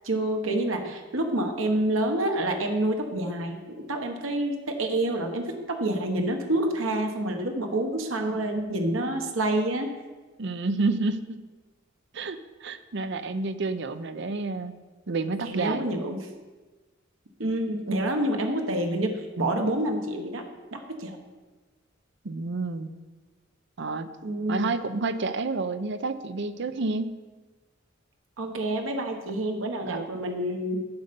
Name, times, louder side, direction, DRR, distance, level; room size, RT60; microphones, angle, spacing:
voice 1, 0.0-9.9 15.4-16.3 17.4-20.4 20.7-21.2 24.2-24.7 28.4-30.9, right 1 dB, 85° right, 4 dB, 1.3 m, -28 dB
voice 2, 10.4-11.4 12.1-14.7 15.1-15.8 22.2-22.9 23.8-24.1 24.5-27.1 29.8-30.1, right 3 dB, 65° right, 11 dB, 0.7 m, -29 dB
11.5 x 6.6 x 5.3 m, 1.3 s
head